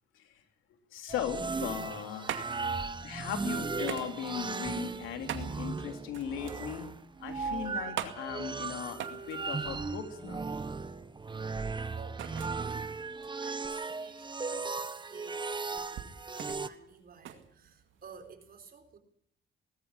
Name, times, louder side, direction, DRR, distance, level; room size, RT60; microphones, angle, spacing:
voice 1, 0.9-2.4 3.0-6.9 7.2-10.4, left 8 dB, 90° left, 6 dB, 3.2 m, -38 dB
sound 1, 1.1-16.7, right 4 dB, 25° right, 1.2 m, -37 dB
sound 2, 2.3-18.3, right 10 dB, 75° right, 2.3 m, -45 dB
voice 2, 11.9-12.3 12.6-13.0 13.4-19.0, right 5 dB, 50° right, 6 dB, 4.5 m, -53 dB
19.5 x 14.0 x 9.8 m, 0.70 s
cardioid pair, 90°, 20 cm